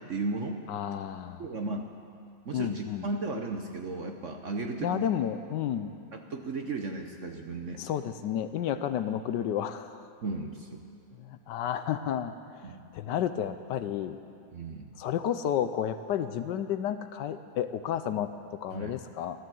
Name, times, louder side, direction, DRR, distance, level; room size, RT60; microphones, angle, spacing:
voice 1, 0.1-0.6 1.4-1.9 2.5-5.1 6.1-7.8 10.2-10.9 12.6-12.9 14.5-14.9 18.7-18.9, right 3 dB, 55° right, 3 dB, 0.9 m, -35 dB
voice 2, 0.7-1.4 2.5-3.1 4.8-6.0 7.8-10.0 11.2-14.2 15.0-19.4, left 9 dB, 75° left, 10 dB, 1.1 m, -32 dB
14.5 x 13.0 x 7.7 m, 2.4 s
omnidirectional pair, 2.1 m